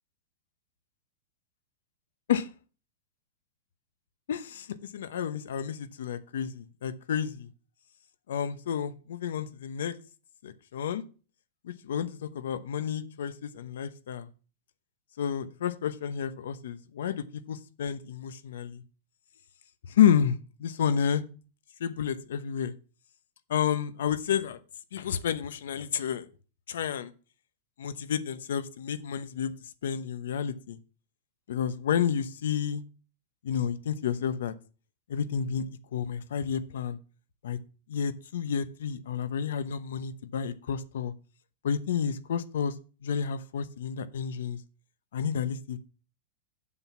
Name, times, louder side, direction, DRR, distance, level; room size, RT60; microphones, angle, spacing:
voice 1, 4.3-7.5 8.3-10.0 10.4-11.0 11.6-14.3 15.2-18.8 19.8-21.2 21.8-22.7 23.5-24.6 24.9-26.3 26.7-27.1 27.8-29.5 29.8-30.8 31.5-32.8 33.4-34.5 35.1-35.7 35.9-37.0 37.4-37.6 37.9-41.1 41.6-42.7 43.0-44.6 45.1-45.8, left 8 dB, 80° left, 14 dB, 0.9 m, -30 dB
7.7 x 6.1 x 5.9 m, 0.36 s
supercardioid pair, 175°, 0 cm